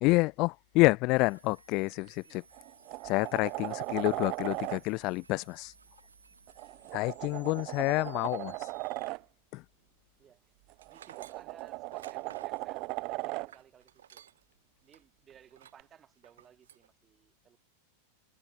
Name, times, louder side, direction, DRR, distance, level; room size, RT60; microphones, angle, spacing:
voice 1, 0.0-2.4 3.0-5.7 6.9-8.6 9.5-9.6, left 24 dB, 40° left, 0.7 m, -28 dB
sound 1, 1.1-9.1, right 4 dB, 80° right, 4.2 m, -60 dB
sound 2, 1.9-2.1 2.5-4.8 6.5-9.2 10.7-13.5 15.8-15.9, right 25 dB, 40° right, 1.1 m, -38 dB
voice 2, 6.7-7.0 10.2-10.6 10.9-14.2 14.8-17.6, right 9 dB, 25° right, 6.1 m, -59 dB
Tools, 10.8-14.5 14.9-15.0 15.5-15.9 16.2-16.9, right 10 dB, 65° right, 2.8 m, -54 dB
figure-of-eight pair, 90°, 0 cm